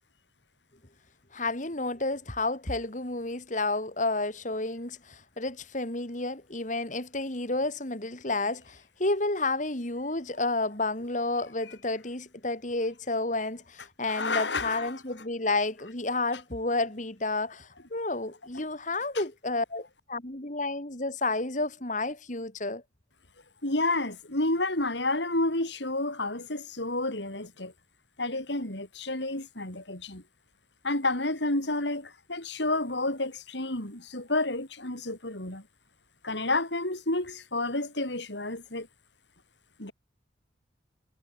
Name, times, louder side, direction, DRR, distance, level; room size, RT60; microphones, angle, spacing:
voice 1, 1.3-22.8, left 2 dB, 45° left, 3.2 m, -31 dB
voice 2, 14.1-14.9 23.6-27.7 28.2-30.2 30.8-35.6 36.2-38.9 39.8-39.9, left 2 dB, 75° left, 6.4 m, -30 dB
head